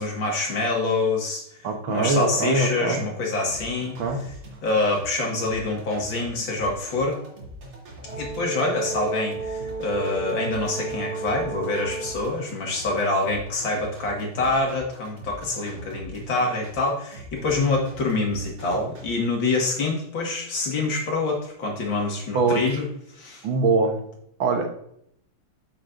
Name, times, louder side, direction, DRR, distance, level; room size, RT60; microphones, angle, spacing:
voice 1, 0.0-1.4 1.9-4.0 4.6-7.2 8.1-22.9 23.1-23.5, left 2 dB, 65° left, -1 dB, 2.6 m, -26 dB
voice 2, 1.6-3.0 4.0-4.2 22.3-22.8 23.4-24.0 24.4-24.7, right 3 dB, 70° right, 4 dB, 1.8 m, -23 dB
sound 1, 3.5-19.1, right 1 dB, 85° right, 3.9 m, -43 dB
Brass instrument, 8.0-12.3, right 4 dB, 40° right, 3.1 m, -33 dB
8.5 x 7.8 x 2.6 m, 0.70 s
omnidirectional pair, 2.3 m